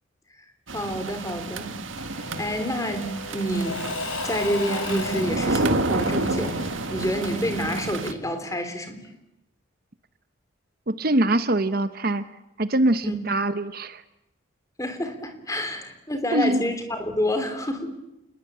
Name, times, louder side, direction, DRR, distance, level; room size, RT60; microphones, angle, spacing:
voice 1, 0.7-1.7 2.1-3.1 3.3-3.8 4.2-9.1 13.0-13.2 14.8-17.9, equal, 15° left, 7 dB, 3.4 m, -28 dB
sound 1, 0.7-8.1, right 2 dB, 75° right, 1.9 m, -29 dB
Engine / Mechanisms / Drill, 2.0-8.6, left 2 dB, 80° left, 5.6 m, -36 dB
voice 2, 10.9-12.2 12.6-14.0 16.3-16.6, right 1 dB, 45° right, 12 dB, 0.9 m, -23 dB
28.0 x 21.0 x 8.7 m, 0.88 s
head